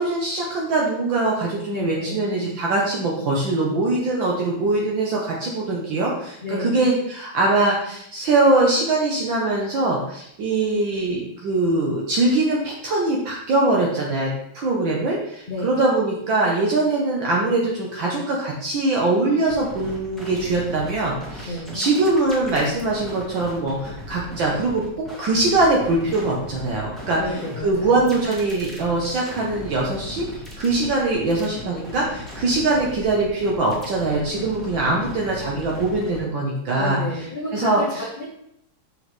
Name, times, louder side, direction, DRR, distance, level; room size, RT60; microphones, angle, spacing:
voice 1, 0.0-37.0 37.5-38.0, right 2 dB, 65° right, -3 dB, 1.6 m, -22 dB
voice 2, 1.7-2.5 6.4-6.9 15.5-15.6 21.4-21.8 27.2-28.2 34.3-34.4 34.9-35.0 36.8-38.3, left 1 dB, 85° left, -3 dB, 0.4 m, -31 dB
sound 1, 19.5-36.2, left 1 dB, ahead, 1.4 m, -38 dB
6.2 x 5.2 x 3.1 m, 0.75 s
omnidirectional pair, 2.4 m